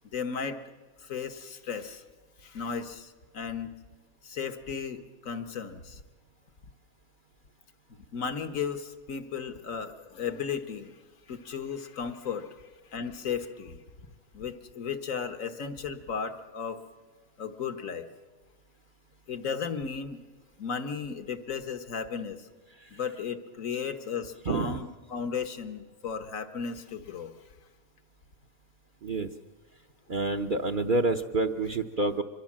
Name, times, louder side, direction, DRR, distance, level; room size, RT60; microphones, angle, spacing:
voice 1, 0.1-0.6 1.0-2.0 2.4-3.7 4.2-6.0 7.9-10.9 11.3-12.5 12.9-13.8 14.3-16.8 17.4-18.1 19.3-20.2 20.6-22.5 22.9-27.3, left 6 dB, 70° left, 8 dB, 1.7 m, -35 dB
voice 2, 24.5-24.8 29.0-29.3 30.1-32.2, right 2 dB, 45° right, 3 dB, 0.9 m, -28 dB
25.0 x 22.0 x 7.4 m, 1.4 s
omnidirectional pair, 1.4 m